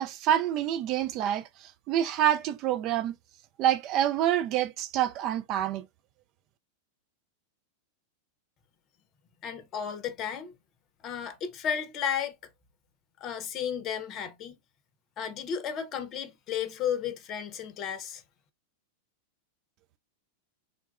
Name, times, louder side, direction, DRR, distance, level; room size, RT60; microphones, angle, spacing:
voice 1, 0.0-3.2 3.6-5.8, right 11 dB, 40° right, 0.4 m, -27 dB
voice 2, 9.4-10.5 11.0-12.4 13.2-14.6 15.2-18.2, left 8 dB, 35° left, 0.7 m, -33 dB
3.7 x 2.3 x 2.3 m
figure-of-eight pair, 90°, 0 cm